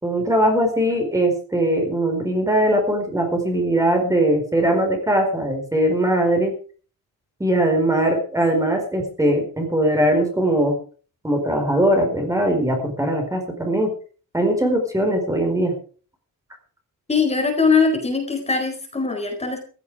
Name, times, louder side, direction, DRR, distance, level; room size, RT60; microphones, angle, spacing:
voice 1, 0.0-6.5 7.4-10.8 11.2-13.9 14.3-15.7, right 1 dB, 10° right, 4 dB, 4.7 m, -20 dB
voice 2, 17.1-19.6, left 4 dB, 20° left, 3 dB, 4.3 m, -21 dB
16.0 x 14.5 x 4.9 m, 0.41 s
wide cardioid pair, 170°, 34 cm